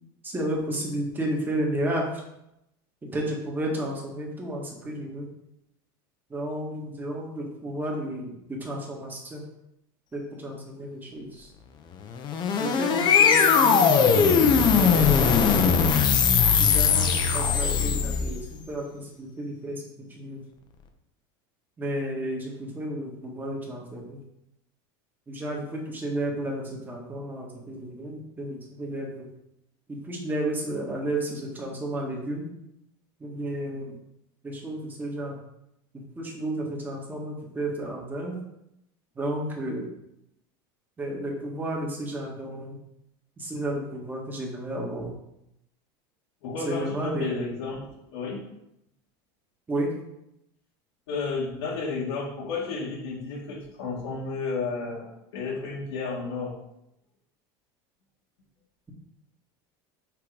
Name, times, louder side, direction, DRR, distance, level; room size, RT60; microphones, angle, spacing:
voice 1, 0.2-2.2 3.0-5.3 6.3-9.4 10.1-11.5 12.6-15.8 16.6-19.8 20.1-20.4 21.8-24.2 25.3-29.3 29.9-32.5 33.2-34.0 34.4-35.4 36.2-38.4 39.1-39.9 41.0-42.8 43.4-45.1 46.6-47.3 49.7-49.9, right 1 dB, 15° right, -1 dB, 1.6 m, -32 dB
sound 1, 12.1-18.4, left 6 dB, 35° left, 0.8 m, -20 dB
voice 2, 46.4-48.4 51.1-56.6, left 4 dB, 90° left, -5 dB, 2.0 m, -32 dB
6.0 x 3.8 x 5.0 m, 0.83 s
supercardioid pair, 140°, 13 cm